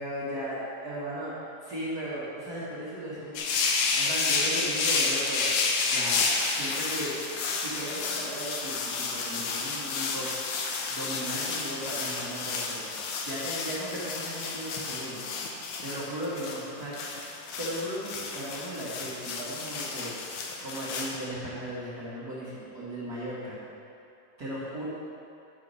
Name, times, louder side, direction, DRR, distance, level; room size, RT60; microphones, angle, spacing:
voice 1, 0.0-1.3 1.6-5.5 5.8-7.1 7.5-10.3 10.9-12.8 13.2-15.2 15.8-16.9 17.2-20.2 20.6-23.6 24.4-24.8, right 1 dB, 40° right, -10 dB, 1.5 m, -36 dB
sound 1, 3.4-21.2, left 4 dB, 75° left, 2.2 m, -31 dB
11.0 x 4.7 x 5.5 m, 2.6 s
omnidirectional pair, 3.8 m